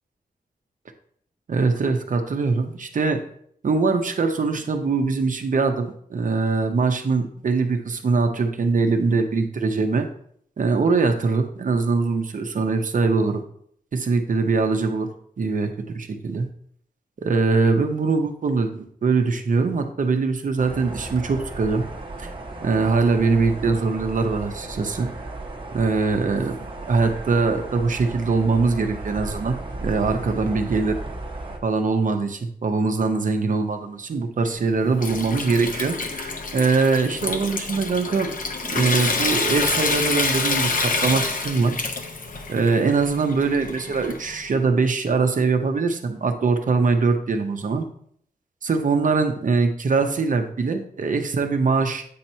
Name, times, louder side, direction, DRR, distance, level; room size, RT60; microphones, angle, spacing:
voice 1, 1.5-3.2 3.6-10.1 10.6-13.4 13.9-15.1 15.4-16.5 17.2-21.9 22.2-22.3 22.6-25.1 25.7-26.6 26.9-31.0 31.6-38.3 38.6-41.8 42.5-47.9 48.6-52.1, right 4 dB, 55° right, 6 dB, 0.7 m, -22 dB
sound 1, 20.6-31.6, right 2 dB, 30° right, 1.0 m, -35 dB
Water tap faucet / Sink (filling or washing) / Trickle dribble, 34.6-44.5, left 3 dB, 60° left, 0.8 m, -27 dB
8.5 x 2.9 x 5.4 m, 0.64 s
wide cardioid pair, 165°, 16 cm